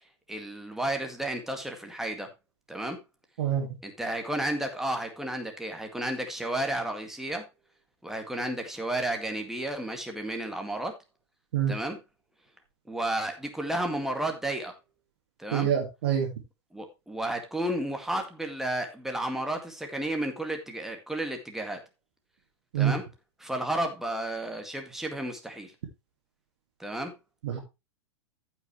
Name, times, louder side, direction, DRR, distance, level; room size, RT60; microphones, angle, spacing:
voice 1, 0.3-2.3 2.7-3.0 3.8-7.5 8.0-10.9 11.7-12.0 12.9-14.7 15.4-15.7 16.7-21.8 22.8-23.0 23.4-25.7 26.8-27.1, right 1 dB, ahead, 4 dB, 2.1 m, -32 dB
voice 2, 15.5-16.3 22.7-22.9 27.4-27.6, right 9 dB, 55° right, 0 dB, 2.4 m, -26 dB
14.5 x 6.0 x 3.2 m, 0.24 s
figure-of-eight pair, 100°, 15 cm